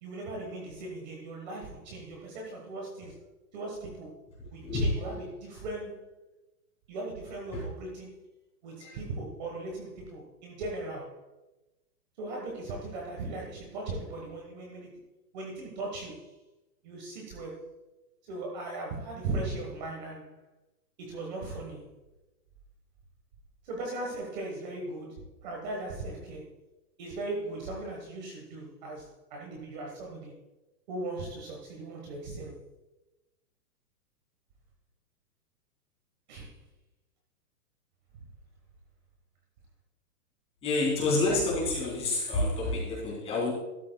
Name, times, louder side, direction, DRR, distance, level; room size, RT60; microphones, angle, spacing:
voice 1, 0.0-3.2 3.5-4.1 4.5-6.0 6.9-8.1 8.6-11.2 12.2-15.0 15.3-16.3 16.8-17.7 18.3-20.4 21.0-21.9 23.6-26.5 27.0-30.3 30.9-32.5 36.3-36.5, right 2 dB, 30° right, -1 dB, 1.3 m, -38 dB
voice 2, 4.4-4.9 7.5-7.6 8.8-8.9 40.6-43.5, left 2 dB, 10° left, -4 dB, 2.8 m, -28 dB
12.5 x 11.5 x 2.3 m, 1.0 s
hypercardioid pair, 170°, 48 cm